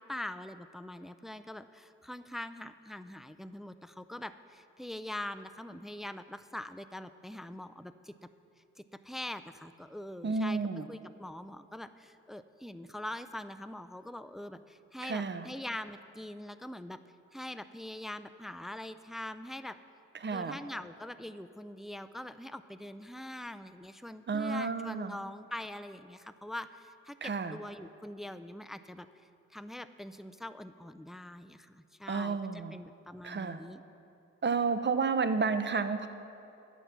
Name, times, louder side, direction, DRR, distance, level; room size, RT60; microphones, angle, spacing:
voice 1, 0.0-8.3 8.8-17.0 17.3-19.8 20.3-29.1 29.5-33.8, left 1 dB, ahead, 11 dB, 0.3 m, -43 dB
voice 2, 10.2-10.8 15.0-15.5 20.2-20.6 24.3-25.2 27.2-27.6 32.1-32.8 33.2-33.6 34.4-36.1, right 4 dB, 35° right, 10 dB, 0.6 m, -31 dB
10.0 x 5.7 x 7.4 m, 2.8 s
cardioid pair, 55°, 31 cm